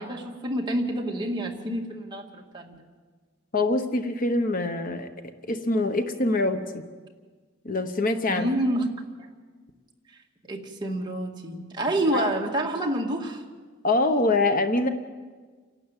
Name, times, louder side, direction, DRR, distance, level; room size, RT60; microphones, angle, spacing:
voice 1, 0.0-2.8 8.3-8.9 10.4-13.4, right 1 dB, 20° right, 0 dB, 2.1 m, -28 dB
voice 2, 3.5-5.1 5.5-6.8 7.6-8.5 12.1-12.3 13.8-14.9, left 2 dB, 40° left, 8 dB, 1.0 m, -24 dB
28.5 x 12.0 x 9.0 m, 1.5 s
head